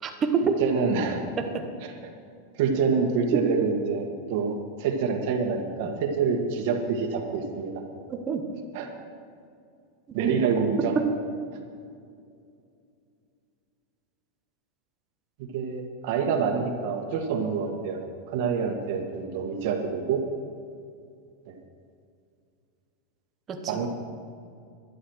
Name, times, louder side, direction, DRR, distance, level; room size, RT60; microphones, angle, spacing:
voice 1, 0.0-0.6 1.4-1.6 3.3-3.6 8.1-8.4 10.1-10.3 10.9-11.1 23.5-23.9, right 5 dB, 15° right, 5 dB, 1.0 m, -27 dB
voice 2, 0.6-1.2 2.6-7.8 8.7-8.9 10.1-10.9 15.5-20.2 21.5-21.6 23.7-23.9, right 5 dB, 45° right, 3 dB, 1.7 m, -27 dB
12.0 x 11.0 x 6.4 m, 2.4 s
supercardioid pair, 180°, 0 cm